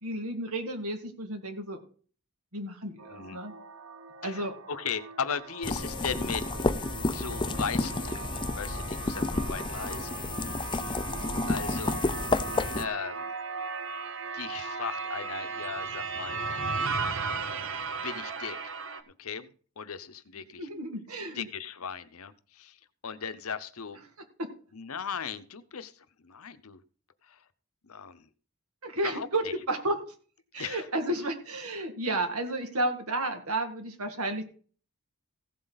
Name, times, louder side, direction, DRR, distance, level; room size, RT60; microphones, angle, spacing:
voice 1, 0.0-1.8 2.5-3.5 4.2-4.5 12.7-12.9 20.6-21.5 24.4-24.5 28.8-30.0 30.5-34.4, right 1 dB, 80° right, 5 dB, 2.2 m, -32 dB
sound 1, 3.0-19.0, right 4 dB, 60° right, 0.9 m, -37 dB
voice 2, 3.1-3.4 4.2-6.4 7.1-10.1 10.8-11.1 11.5-12.0 12.8-13.3 14.3-16.4 17.3-17.6 18.0-18.7 19.2-20.7 21.3-22.8 23.0-24.0 24.7-26.8 27.2-27.4 27.8-28.3 29.0-29.5 30.6-30.9, left 6 dB, 75° left, 13 dB, 0.9 m, -37 dB
sound 2, 5.6-12.8, left 3 dB, 20° left, 0.5 m, -30 dB
15.5 x 7.7 x 4.1 m, 0.42 s
head